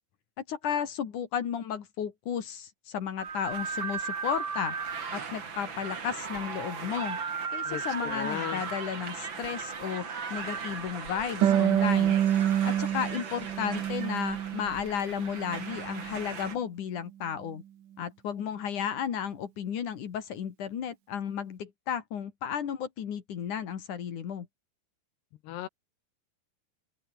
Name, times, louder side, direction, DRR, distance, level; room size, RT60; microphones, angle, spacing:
voice 1, 0.5-4.8 5.1-7.2 7.5-17.6 18.0-24.5, left 8 dB, 55° left, 3.3 m, -34 dB
sound 1, 3.2-16.5, right 5 dB, 35° right, 2.6 m, -37 dB
voice 2, 7.7-8.6 25.5-25.7, left 14 dB, 80° left, 3.3 m, -36 dB
Harp, 11.4-14.8 15.1-16.2, right 10 dB, 60° right, 2.9 m, -27 dB
open air
omnidirectional pair, 4.8 m